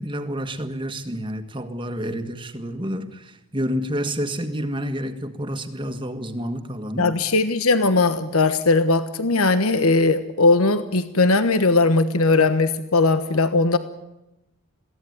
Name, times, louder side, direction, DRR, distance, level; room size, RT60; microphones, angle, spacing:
voice 1, 0.0-7.1, equal, 25° right, 1.7 m, -29 dB
voice 2, 7.0-13.8, left 3 dB, 85° left, 1.3 m, -19 dB
22.5 x 17.0 x 9.5 m
head